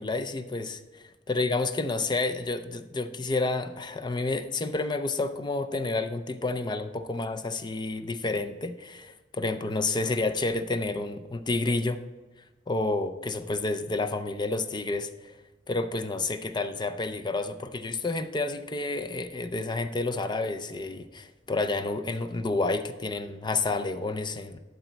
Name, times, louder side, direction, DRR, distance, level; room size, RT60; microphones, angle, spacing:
voice 1, 0.0-12.0 12.7-15.3 15.7-24.6, left 3 dB, 25° left, 9 dB, 0.5 m, -30 dB
12.0 x 4.0 x 4.5 m, 1.2 s
head